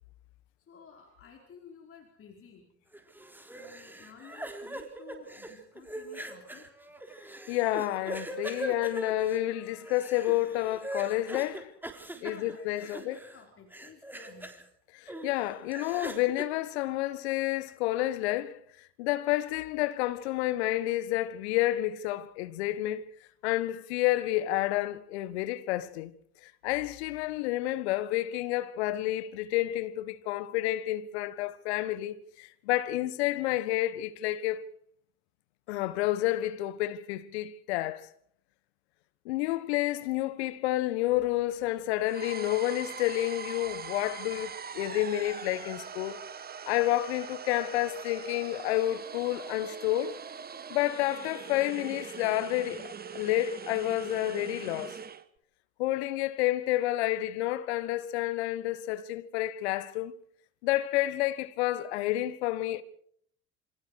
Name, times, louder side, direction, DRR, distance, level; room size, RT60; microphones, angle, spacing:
voice 1, 0.6-2.7 3.6-6.8 12.1-14.5, left 6 dB, 40° left, 4.7 m, -53 dB
sound 1, 2.9-13.4 13.7-14.6 15.1-16.4, right 1 dB, 5° right, 4.0 m, -41 dB
voice 2, 7.5-11.7 12.2-13.1 14.9-18.6 19.0-23.0 23.4-26.1 26.6-34.6 35.7-38.1 39.2-46.2 46.7-50.2 50.7-54.9 55.8-60.1 60.6-62.8, left 15 dB, 70° left, 1.6 m, -30 dB
sound 2, 42.1-55.2, right 6 dB, 25° right, 1.5 m, -42 dB
27.5 x 26.5 x 4.8 m
hypercardioid pair, 70°, 34 cm